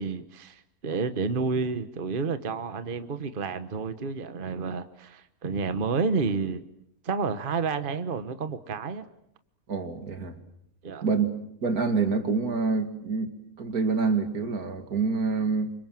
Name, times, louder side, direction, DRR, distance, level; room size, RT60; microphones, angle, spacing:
voice 1, 0.0-6.6 7.0-9.1 10.8-11.0, right 4 dB, 40° right, 11 dB, 1.3 m, -30 dB
voice 2, 9.7-10.4 11.0-11.4 11.6-13.3 13.6-15.7, right 4 dB, 85° right, 8 dB, 2.7 m, -26 dB
28.5 x 26.0 x 7.6 m, 0.74 s
omnidirectional pair, 1.5 m